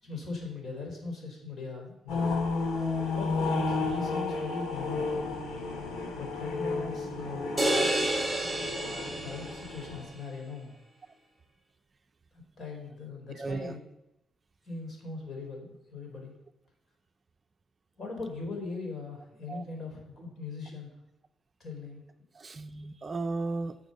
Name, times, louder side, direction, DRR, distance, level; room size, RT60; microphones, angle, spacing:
voice 1, 0.0-2.5 3.1-5.3 6.1-7.6 9.2-10.7 12.3-13.9 14.7-16.3 18.0-20.9 21.6-22.0, left 3 dB, 50° left, 1 dB, 4.4 m, -40 dB
sound 1, 2.1-10.0, left 3 dB, 85° left, 3.2 m, -32 dB
sound 2, 7.6-9.9, right 1 dB, 5° right, 2.9 m, -29 dB
voice 2, 13.4-13.7 19.5-19.6 22.4-23.7, right 3 dB, 35° right, 9 dB, 0.6 m, -35 dB
9.9 x 7.1 x 6.7 m, 0.90 s
cardioid pair, 90°, 0 cm